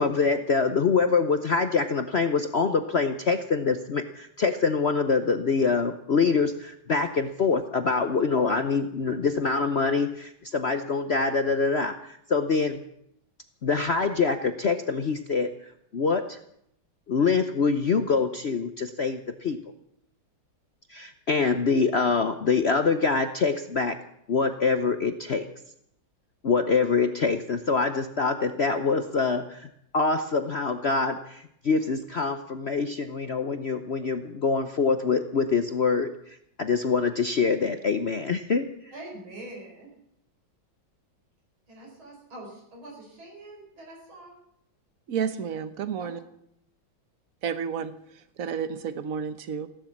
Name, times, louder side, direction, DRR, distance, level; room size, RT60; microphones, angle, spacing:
voice 1, 0.0-12.8 13.6-16.4 17.1-19.6 20.9-24.0 24.3-25.5 26.4-29.7 29.9-38.7, left 4 dB, 60° left, 8 dB, 0.6 m, -25 dB
voice 2, 38.9-39.9 41.7-44.4 46.0-46.1, right 1 dB, 85° right, -2 dB, 5.6 m, -44 dB
voice 3, 45.1-46.2 47.4-49.7, right 7 dB, 50° right, 11 dB, 1.3 m, -31 dB
16.5 x 12.0 x 7.3 m, 0.74 s
omnidirectional pair, 2.2 m